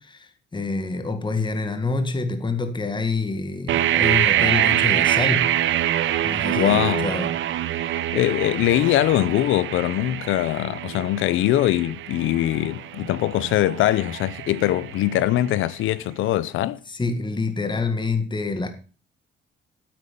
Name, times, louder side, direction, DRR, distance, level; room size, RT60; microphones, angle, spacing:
voice 1, 0.0-5.5 6.2-7.3 16.9-18.7, left 3 dB, 25° left, 1.8 m, -27 dB
sound 1, 3.7-15.5, right 12 dB, 75° right, 0.9 m, -25 dB
voice 2, 6.6-7.1 8.1-16.8, left 14 dB, 85° left, 0.6 m, -22 dB
9.0 x 8.8 x 6.9 m
cardioid pair, 90°, 20 cm